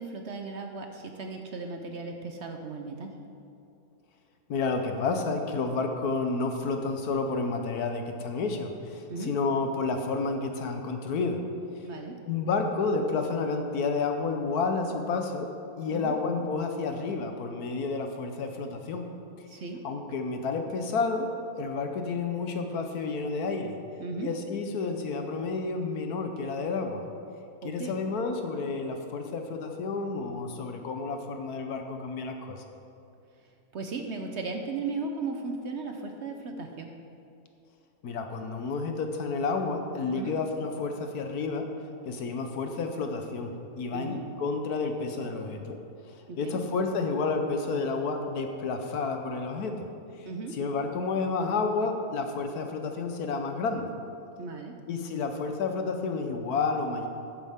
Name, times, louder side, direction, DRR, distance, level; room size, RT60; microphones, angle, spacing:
voice 1, 0.0-3.1 9.1-9.3 11.8-12.2 15.9-16.2 19.5-19.8 24.0-24.3 27.6-28.0 33.7-36.9 40.1-40.3 43.9-44.2 46.3-46.6 50.2-50.6 54.4-54.8, right 4 dB, 55° right, 4 dB, 0.9 m, -36 dB
voice 2, 4.5-11.4 12.2-15.5 15.8-19.0 19.5-21.3 21.6-23.8 24.2-27.0 27.6-32.6 38.0-41.7 42.0-45.8 46.1-49.9 50.1-50.3 50.5-53.9 54.9-57.1, left 4 dB, 75° left, 5 dB, 1.4 m, -30 dB
12.5 x 9.6 x 3.6 m, 2.6 s
omnidirectional pair, 1.6 m